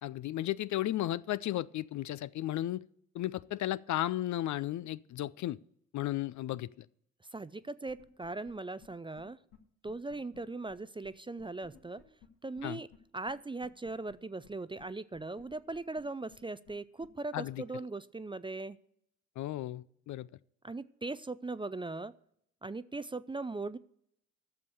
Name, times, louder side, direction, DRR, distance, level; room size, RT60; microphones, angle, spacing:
voice 1, 0.0-2.8 3.1-5.6 5.9-6.9 12.6-12.8 17.3-17.6 19.4-20.3, left 14 dB, 55° left, 0.5 m, -34 dB
voice 2, 7.3-9.4 9.8-12.0 12.4-12.9 13.1-18.8 20.6-22.1 22.6-23.8, right 3 dB, 15° right, 0.4 m, -39 dB
sound 1, 7.9-8.5 8.8-8.9 9.2-9.3 9.5-9.6 9.9-10.4 10.7-10.8 11.0-11.1 11.4-12.3 12.6-12.7 12.9-13.0 13.3-13.4 13.6-14.1 14.4-14.5 14.8-14.9 15.1-16.0 16.3-16.4 16.7-16.8 17.0-17.1, left 7 dB, 75° left, 1.6 m, -57 dB
12.0 x 6.9 x 6.8 m
hypercardioid pair, 40°, 36 cm